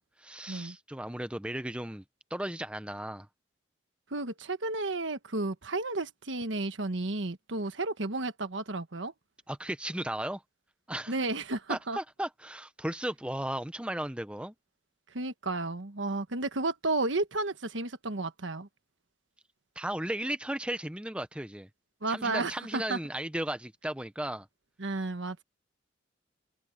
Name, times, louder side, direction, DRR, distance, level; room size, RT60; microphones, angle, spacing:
voice 1, 0.0-2.0 2.3-3.3 9.5-10.4 10.9-11.1 11.7-14.5 19.8-21.7 22.1-24.5, right 1 dB, 5° right, 0.8 m, -35 dB
voice 2, 4.1-9.1 11.1-12.0 15.1-18.7 22.0-23.0 24.8-25.4, right 2 dB, 75° right, 1.3 m, -32 dB
head